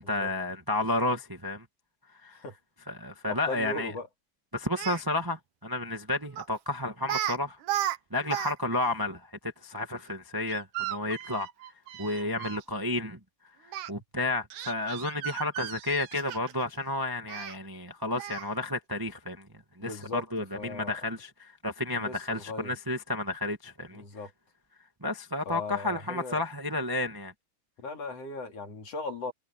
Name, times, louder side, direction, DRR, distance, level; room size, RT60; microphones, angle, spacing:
voice 1, 0.0-1.6 2.2-2.4 2.9-3.9 4.5-7.6 8.1-11.5 12.0-13.2 13.9-19.5 19.8-24.0 25.0-27.3, left 2 dB, 10° right, 1.4 m, -31 dB
voice 2, 3.3-4.1 12.2-12.5 19.8-20.2 20.5-20.9 21.9-22.7 23.9-24.3 25.5-26.4 27.8-29.3, left 3 dB, 55° left, 4.0 m, -38 dB
Speech, 4.6-5.0 6.4-6.6 7.0-7.4 7.6-8.5 8.8-8.9 10.5-12.6 13.7-13.9 14.5-16.6 17.3-17.5 18.2-18.5, right 12 dB, 85° right, 2.7 m, -35 dB
omnidirectional pair, 3.5 m